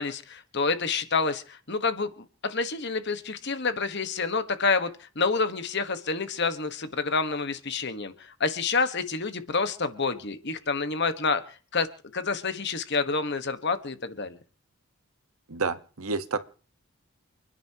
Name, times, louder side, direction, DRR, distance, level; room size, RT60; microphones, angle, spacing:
voice 1, 0.0-11.9 12.1-14.4, left 4 dB, 50° left, 10 dB, 1.4 m, -28 dB
voice 2, 15.5-16.4, right 4 dB, 75° right, 11 dB, 1.2 m, -29 dB
29.5 x 10.5 x 2.9 m, 0.40 s
head